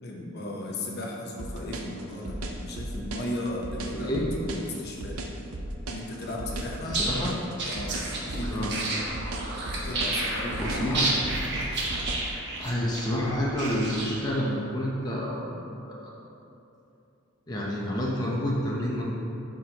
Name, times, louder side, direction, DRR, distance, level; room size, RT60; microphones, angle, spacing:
voice 1, 0.0-4.1 4.4-5.2 5.9-7.0 7.7-8.7 9.7-11.1, left 1 dB, 50° left, -2 dB, 1.0 m, -36 dB
sound 1, 1.4-12.3, right 1 dB, 80° right, 0.7 m, -35 dB
voice 2, 3.9-4.3 7.0-7.3 8.5-8.8 10.6-11.1 12.6-15.5 15.9-16.1 17.5-19.1, equal, 20° left, -5 dB, 0.9 m, -29 dB
sound 2, 6.8-14.4, right 2 dB, 55° right, 1.3 m, -31 dB
12.0 x 5.2 x 3.0 m, 2.8 s
head